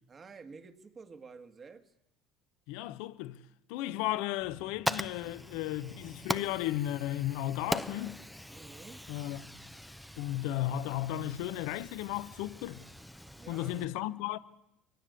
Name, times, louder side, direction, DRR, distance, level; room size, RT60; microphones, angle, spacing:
voice 1, 0.1-1.9 8.5-9.0 13.4-13.9, right 4 dB, 35° right, 2.0 m, -50 dB
voice 2, 2.7-3.4 3.7-8.2 9.1-9.4 10.2-12.8 13.5-14.4, left 14 dB, 80° left, 1.0 m, -34 dB
Fire, 4.4-13.9, equal, ahead, 0.8 m, -41 dB
23.5 x 17.5 x 8.3 m
supercardioid pair, 85°, 0 cm